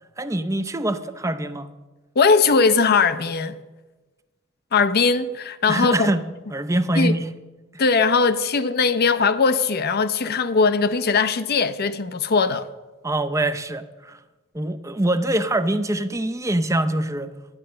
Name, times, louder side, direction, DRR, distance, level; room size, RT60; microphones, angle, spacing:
voice 1, 0.2-1.7 5.7-6.2 6.5-7.3 13.0-14.2 14.5-17.3, right 1 dB, 15° right, 0.5 m, -24 dB
voice 2, 2.2-3.6 4.7-6.1 7.0-7.1 7.8-12.7, left 4 dB, 45° left, 0.6 m, -20 dB
11.5 x 9.8 x 6.6 m
head